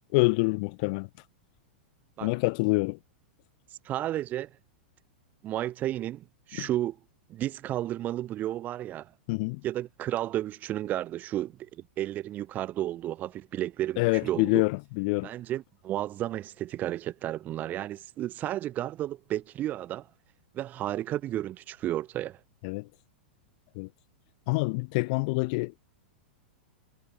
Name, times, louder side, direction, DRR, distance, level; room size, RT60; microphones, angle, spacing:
voice 1, 0.1-1.1 2.2-3.0 6.6-6.7 9.3-9.6 14.0-15.3 22.6-22.8 23.8-23.9 24.5-25.8, left 29 dB, 45° left, 2.9 m, -26 dB
voice 2, 3.9-4.5 5.4-7.0 7.3-9.1 9.6-14.6 15.2-20.1 20.5-22.4, right 13 dB, 30° right, 5.2 m, -32 dB
figure-of-eight pair, 95°, 6 cm